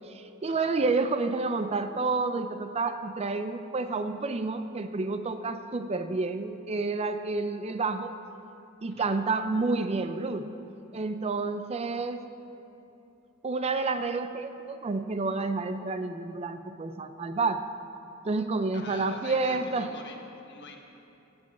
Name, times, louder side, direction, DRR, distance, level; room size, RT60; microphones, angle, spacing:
voice 1, 0.0-8.1 8.8-10.5 10.9-12.2 13.4-17.6 18.2-19.9, right 3 dB, 30° right, 9 dB, 0.4 m, -29 dB
voice 2, 18.7-20.8, left 3 dB, 60° left, 2 dB, 1.4 m, -44 dB
15.0 x 5.3 x 8.2 m, 2.8 s
head